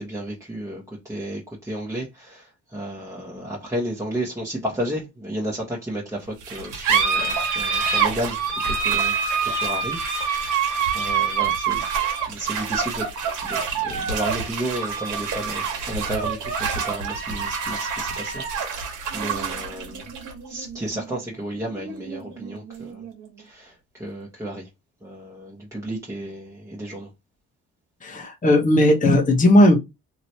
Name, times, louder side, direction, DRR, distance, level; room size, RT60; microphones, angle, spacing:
voice 1, 0.0-9.1 9.4-10.6 10.9-11.8 12.3-13.1 13.4-18.9 19.1-20.0 20.5-23.0 23.4-24.7 25.0-27.1, right 1 dB, 10° right, 1.1 m, -32 dB
sound 1, 6.4-23.4, right 6 dB, 80° right, 1.3 m, -26 dB
voice 2, 28.0-29.8, left 1 dB, 25° left, 1.0 m, -16 dB
3.0 x 2.9 x 2.8 m
cardioid pair, 90°, 30 cm